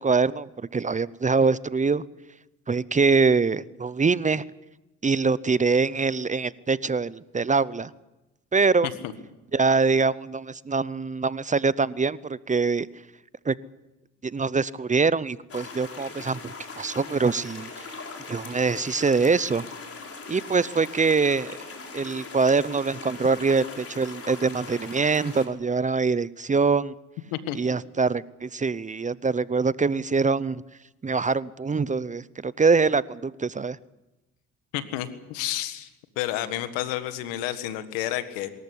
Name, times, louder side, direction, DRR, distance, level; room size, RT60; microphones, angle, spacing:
voice 1, 0.0-2.0 2.7-4.4 5.0-7.9 8.5-8.9 9.5-12.9 13.5-13.6 14.2-17.9 18.3-19.6 20.3-21.5 21.9-26.9 27.5-30.6 31.0-33.8, right 4 dB, 20° right, 19 dB, 0.7 m, -24 dB
sound 1, 15.5-25.5, left 4 dB, 40° left, 4.7 m, -40 dB
voice 2, 34.7-35.9 36.1-38.5, left 13 dB, 90° left, 11 dB, 1.7 m, -30 dB
23.5 x 14.0 x 9.9 m, 1.0 s
supercardioid pair, 70°, 34 cm